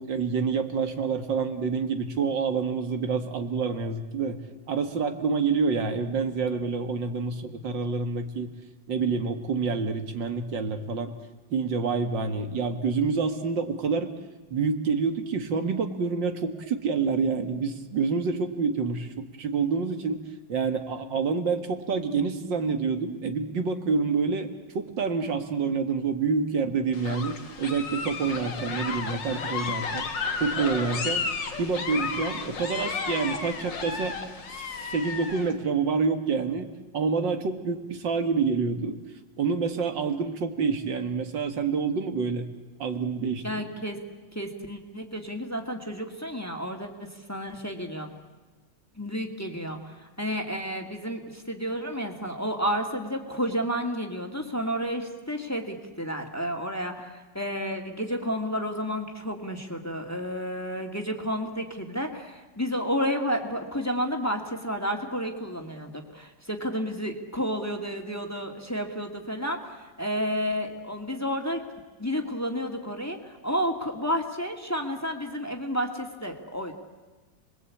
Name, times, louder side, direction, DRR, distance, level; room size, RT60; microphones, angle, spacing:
voice 1, 0.0-4.4 4.7-8.5 8.9-11.1 11.5-14.1 14.5-20.2 20.5-30.1 30.4-31.3 31.6-34.2 34.5-36.7 36.9-39.0 39.4-42.5 42.8-43.7, right 5 dB, 85° right, 6 dB, 2.4 m, -27 dB
sound 1, 26.9-35.5, left 5 dB, 80° left, 2.6 m, -33 dB
voice 2, 43.4-44.0 44.3-48.1 49.0-71.6 72.0-76.7, equal, 10° left, 3 dB, 2.4 m, -31 dB
30.0 x 21.5 x 8.6 m, 1.3 s
omnidirectional pair, 1.9 m